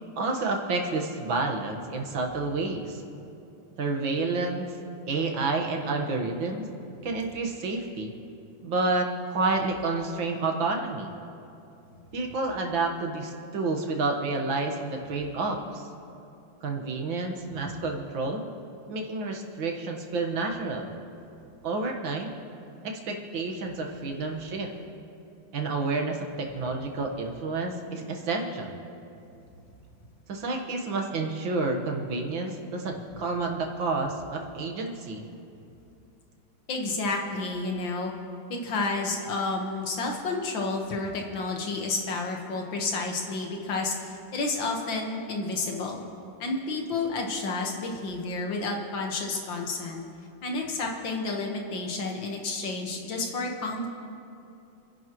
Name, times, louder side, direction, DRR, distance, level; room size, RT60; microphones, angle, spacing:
voice 1, 0.2-3.0 3.8-4.7 5.1-6.7 7.0-8.1 8.6-11.1 12.1-15.8 16.6-18.4 18.9-20.9 21.6-22.3 22.8-24.7 25.5-28.8 30.3-35.2, right 3 dB, 85° right, 2 dB, 2.2 m, -29 dB
voice 2, 36.7-38.1 38.5-46.0 46.4-50.0 50.4-53.9, left 3 dB, 75° left, 1 dB, 2.1 m, -30 dB
29.0 x 11.0 x 3.1 m, 2.7 s
omnidirectional pair, 2.1 m